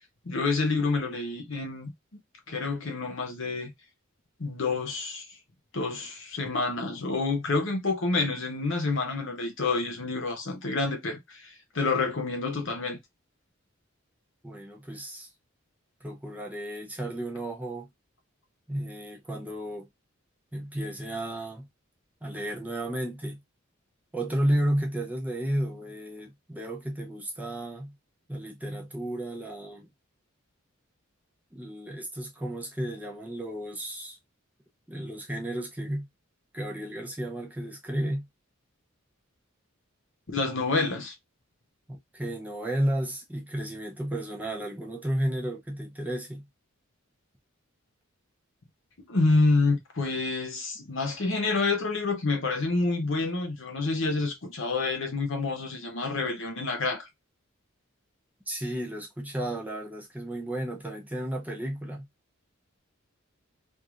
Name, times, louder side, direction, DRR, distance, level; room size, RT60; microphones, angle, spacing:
voice 1, 0.2-1.9 2.5-3.7 4.4-5.2 5.7-13.0 40.3-41.1 49.1-57.1, left 3 dB, 65° left, 0.9 m, -28 dB
voice 2, 14.4-15.3 16.0-17.9 18.7-19.9 20.5-21.7 22.2-23.4 24.1-27.9 28.3-29.9 31.5-34.2 34.9-36.1 36.5-38.3 41.9-46.5 58.5-62.1, right 1 dB, 10° right, 0.6 m, -33 dB
3.1 x 2.6 x 2.4 m
head